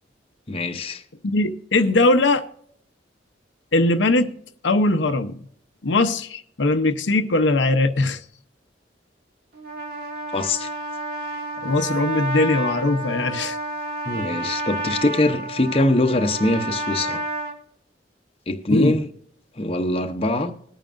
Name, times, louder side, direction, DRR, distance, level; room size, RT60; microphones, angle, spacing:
voice 1, 0.5-1.0 10.3-10.7 14.0-17.2 18.5-19.1 19.6-20.5, left 2 dB, 30° left, 0.8 m, -22 dB
voice 2, 1.2-2.4 3.7-4.3 4.6-5.4 5.8-8.2 11.6-13.6 18.7-18.9, left 2 dB, 85° left, 0.8 m, -20 dB
Trumpet, 9.5-17.6, right 1 dB, 55° right, 1.5 m, -30 dB
21.0 x 9.0 x 2.5 m
head